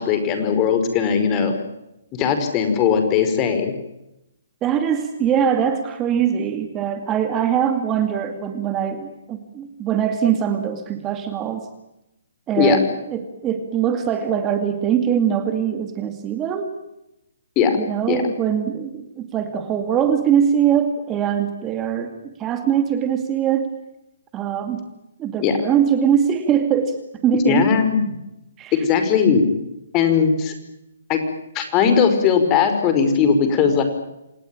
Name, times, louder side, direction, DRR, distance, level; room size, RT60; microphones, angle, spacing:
voice 1, 0.0-1.5 2.1-3.7 12.6-12.8 17.6-17.7 18.1-18.2 25.4-25.6 27.4-28.1 28.8-29.5 29.9-30.5 31.1-31.2 31.6-33.8, left 6 dB, 25° left, 7 dB, 5.0 m, -18 dB
voice 2, 4.6-11.7 12.5-16.8 17.7-23.8 24.3-24.8 25.2-27.6 28.6-28.7, right 8 dB, 20° right, 7 dB, 2.4 m, -22 dB
27.5 x 18.5 x 8.8 m, 0.89 s
hypercardioid pair, 135°, 0 cm